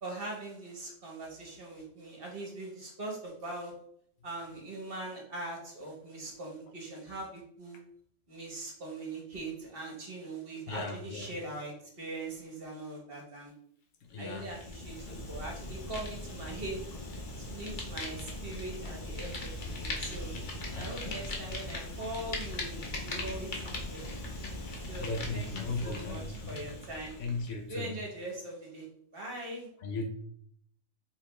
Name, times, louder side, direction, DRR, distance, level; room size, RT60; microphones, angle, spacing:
voice 1, 0.0-3.7 4.2-7.8 8.3-13.5 14.2-16.8 17.4-19.5 19.8-20.3 20.8-22.8 23.0-24.1 24.9-25.5 25.8-27.1 27.7-28.8 29.1-29.7, right 2 dB, 45° right, -1 dB, 1.2 m, -41 dB
voice 2, 10.7-11.3 14.0-14.6 15.1-15.2 20.7-20.9 24.9-26.7 27.2-27.9 29.8-30.1, left 3 dB, 70° left, 3 dB, 1.0 m, -37 dB
Fire, 14.2-27.6, left 2 dB, 40° left, 0.9 m, -39 dB
4.9 x 2.8 x 3.2 m, 0.67 s
omnidirectional pair, 1.4 m